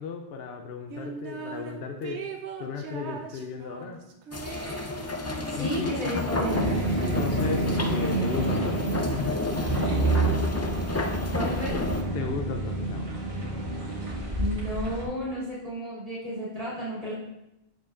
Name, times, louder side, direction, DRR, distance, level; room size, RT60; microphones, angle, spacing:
voice 1, 0.0-2.2 2.6-4.0 5.5-5.9 6.9-9.4 12.1-13.1, left 5 dB, 65° left, 4 dB, 0.8 m, -35 dB
sound 1, 0.9-1.7 2.0-6.7, right 5 dB, 80° right, 1.0 m, -40 dB
sound 2, 4.3-12.0, left 2 dB, 25° left, 0.3 m, -31 dB
voice 2, 5.5-6.7 11.3-11.8 14.4-17.1, equal, 35° right, -9 dB, 2.8 m, -32 dB
sound 3, 6.5-15.0, right 2 dB, 50° right, 2.1 m, -28 dB
7.9 x 7.0 x 2.5 m, 0.85 s
omnidirectional pair, 1.1 m